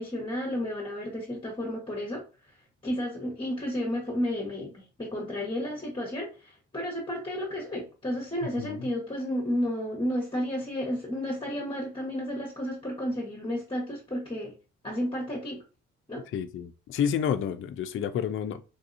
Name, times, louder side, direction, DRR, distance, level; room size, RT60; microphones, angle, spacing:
voice 1, 0.0-14.5 14.8-15.6 16.1-16.2, equal, 15° left, 1.0 m, -32 dB
voice 2, 16.3-18.6, left 8 dB, 45° left, 0.4 m, -29 dB
3.3 x 2.7 x 2.5 m
cardioid pair, 90°, 30 cm